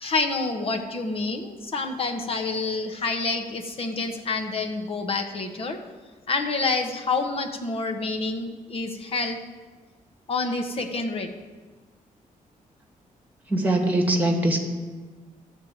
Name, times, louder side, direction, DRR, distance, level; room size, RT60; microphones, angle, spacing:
voice 1, 0.0-5.8 6.3-9.4 10.3-11.3, left 3 dB, 40° left, 4 dB, 1.2 m, -28 dB
voice 2, 13.5-14.6, right 1 dB, 10° right, 1 dB, 1.9 m, -22 dB
13.5 x 4.5 x 8.0 m, 1.3 s
wide cardioid pair, 155°, 14 cm